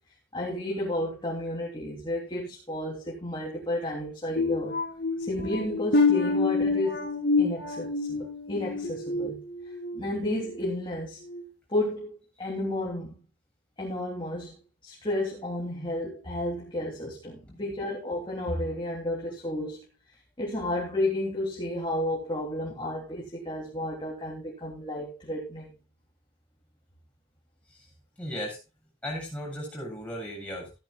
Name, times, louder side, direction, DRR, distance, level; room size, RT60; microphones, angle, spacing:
voice 1, 0.3-4.7 5.3-9.4 9.9-11.2 11.7-13.2 13.8-14.5 14.8-19.8 20.4-25.7, left 1 dB, 25° left, -3 dB, 3.3 m, -32 dB
sound 1, 4.4-10.0 10.4-10.7 11.2-11.4, left 3 dB, 55° left, 2.9 m, -27 dB
voice 2, 28.2-28.6 29.0-30.7, equal, 5° left, -3 dB, 7.6 m, -36 dB
15.5 x 13.0 x 2.5 m, 0.27 s
head